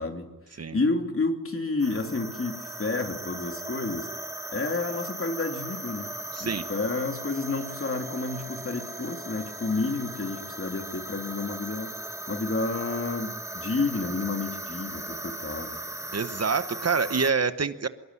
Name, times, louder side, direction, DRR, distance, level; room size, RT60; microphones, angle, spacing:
voice 1, 0.0-4.1 4.5-6.1 6.4-11.9 12.3-15.8, left 3 dB, 40° left, 4 dB, 3.3 m, -30 dB
sound 1, 1.8-17.3, right 1 dB, 10° right, 1.4 m, -38 dB
voice 2, 6.3-6.7 16.1-17.9, right 5 dB, 50° right, 11 dB, 1.1 m, -26 dB
24.5 x 22.5 x 9.8 m, 1.0 s
wide cardioid pair, 135°, 33 cm